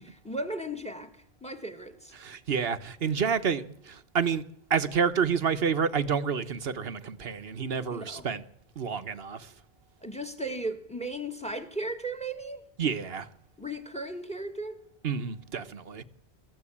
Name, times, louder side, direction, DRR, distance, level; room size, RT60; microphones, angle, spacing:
voice 1, 0.0-2.1 7.9-8.3 10.0-12.6 13.6-14.8, right 1 dB, 5° left, 1.9 m, -36 dB
voice 2, 2.2-4.4 4.7-8.4 8.8-9.5 12.8-13.3 15.0-16.0, right 6 dB, 65° right, 1.3 m, -29 dB
26.0 x 14.5 x 8.6 m
omnidirectional pair, 1.1 m